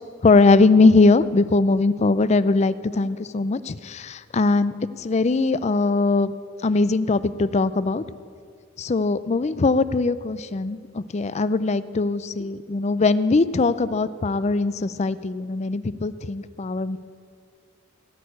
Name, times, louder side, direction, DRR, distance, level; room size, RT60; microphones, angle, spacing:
voice 1, 0.2-6.3 6.6-8.0 8.8-17.0, left 3 dB, 35° left, 15 dB, 0.4 m, -21 dB
18.0 x 6.5 x 9.2 m, 2.1 s
head